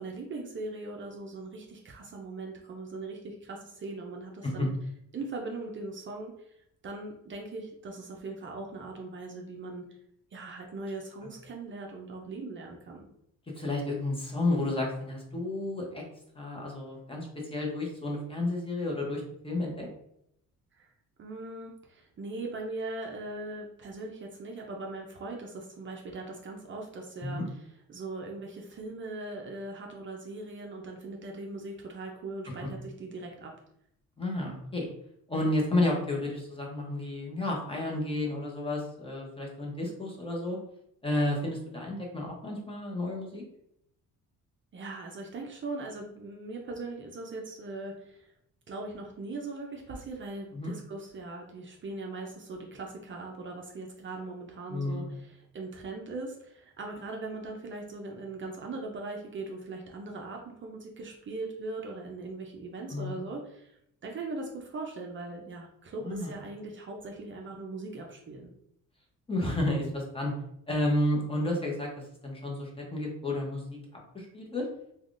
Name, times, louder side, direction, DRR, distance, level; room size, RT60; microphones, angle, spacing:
voice 1, 0.0-4.7 5.1-9.8 10.3-13.1 20.8-20.9 21.2-27.4 27.9-33.5 44.7-48.3 48.7-68.5, right 2 dB, 35° right, 0 dB, 0.5 m, -40 dB
voice 2, 13.6-16.0 16.3-19.9 27.2-27.4 34.2-34.9 35.3-40.6 41.0-43.4 50.5-50.7 54.7-55.0 62.9-63.2 66.0-66.3 69.3-70.3 70.7-71.9 72.2-73.8 74.1-74.7, left 1 dB, 15° left, -1 dB, 0.7 m, -31 dB
3.4 x 2.3 x 2.4 m, 0.75 s
cardioid pair, 120°, 33 cm